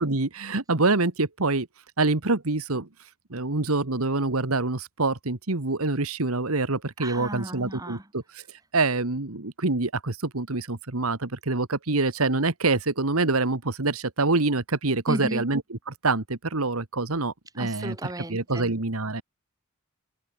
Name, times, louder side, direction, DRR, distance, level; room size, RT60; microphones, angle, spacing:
voice 1, 0.0-1.7 2.0-2.9 3.3-8.4 8.7-18.0 18.3-19.2, right 3 dB, 85° right, 1.8 m, -26 dB
voice 2, 7.0-8.1 15.1-15.4 17.6-18.7, right 1 dB, 15° right, 4.2 m, -34 dB
head